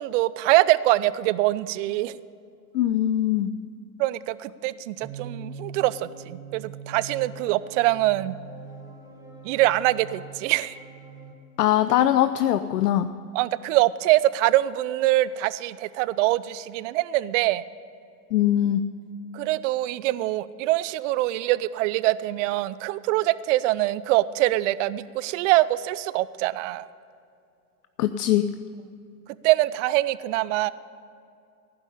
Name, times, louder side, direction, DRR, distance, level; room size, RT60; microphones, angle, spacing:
voice 1, 0.0-2.2 4.0-8.4 9.4-10.8 13.3-17.6 19.3-26.9 29.4-30.7, right 17 dB, 50° right, 17 dB, 0.5 m, -24 dB
voice 2, 2.7-3.5 11.6-13.1 18.3-18.8 28.0-28.5, left 12 dB, 75° left, 10 dB, 0.6 m, -21 dB
sound 1, 5.0-11.3, right 4 dB, 5° right, 1.3 m, -42 dB
15.5 x 5.4 x 9.9 m, 2.5 s
hypercardioid pair, 105°, 47 cm